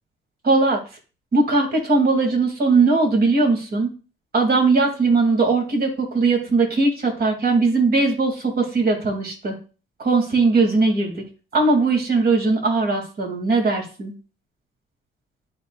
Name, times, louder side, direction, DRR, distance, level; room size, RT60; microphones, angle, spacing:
voice 1, 0.4-0.8 1.3-3.9 4.3-9.5 10.0-11.2 11.5-14.1, right 3 dB, 50° right, 2 dB, 2.5 m, -19 dB
11.0 x 4.2 x 2.4 m, 0.34 s
cardioid pair, 90°, 20 cm